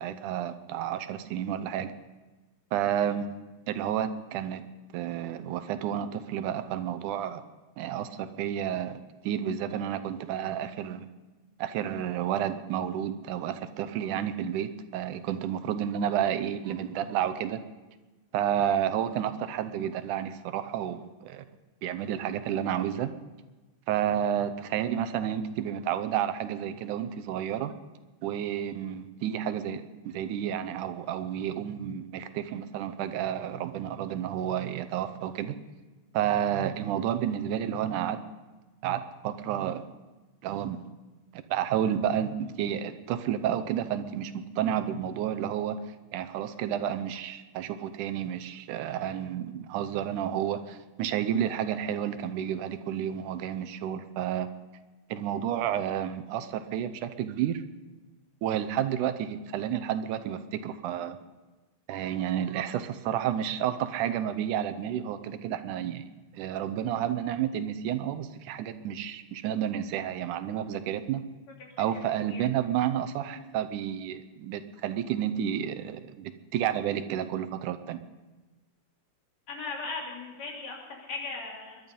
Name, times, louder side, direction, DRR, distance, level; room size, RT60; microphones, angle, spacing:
voice 1, 0.0-1.9 2.7-3.3 3.7-4.6 4.9-7.4 7.8-9.0 9.2-11.1 11.6-17.6 18.3-21.4 21.8-23.1 23.9-27.7 28.2-35.6 36.1-38.2 38.8-39.8 40.4-40.8 41.3-45.8 46.1-54.5 55.1-57.6 58.4-61.2 61.9-66.0 66.4-71.2 71.8-78.0, right 10 dB, 85° right, 10 dB, 2.3 m, -31 dB
voice 2, 71.8-72.4 73.3-73.5 79.5-81.8, left 3 dB, 60° left, -2 dB, 4.3 m, -38 dB
22.5 x 11.0 x 5.4 m, 1.2 s
omnidirectional pair, 3.5 m